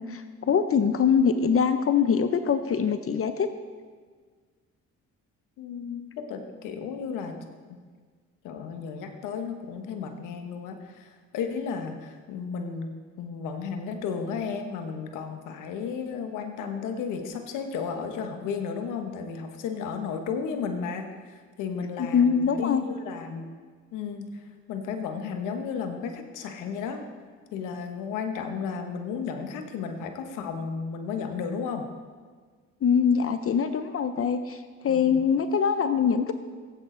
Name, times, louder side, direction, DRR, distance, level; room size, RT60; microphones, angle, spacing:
voice 1, 0.0-3.5 22.0-22.8 32.8-36.3, left 6 dB, 45° left, 10 dB, 0.7 m, -23 dB
voice 2, 5.6-7.4 7.7-7.8 8.4-12.9 13.2-23.5 23.9-27.0 27.5-31.9 34.9-35.2, left 6 dB, 85° left, 6 dB, 1.2 m, -33 dB
15.5 x 8.4 x 3.9 m, 1.5 s
supercardioid pair, 60°, 30 cm